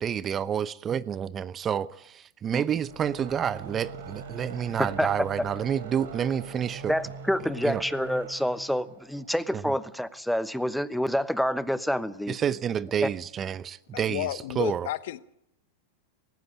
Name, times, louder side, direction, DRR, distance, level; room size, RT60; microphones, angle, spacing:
voice 1, 0.0-6.9 7.6-7.8 12.3-14.3 14.6-14.9, right 8 dB, 30° right, 0.7 m, -29 dB
sound 1, 2.7-10.0, right 4 dB, 75° right, 4.6 m, -43 dB
voice 2, 6.9-12.4 13.0-13.1, equal, ahead, 1.0 m, -28 dB
voice 3, 13.9-15.2, left 14 dB, 70° left, 0.9 m, -32 dB
18.5 x 15.5 x 9.2 m
hypercardioid pair, 105°, 0 cm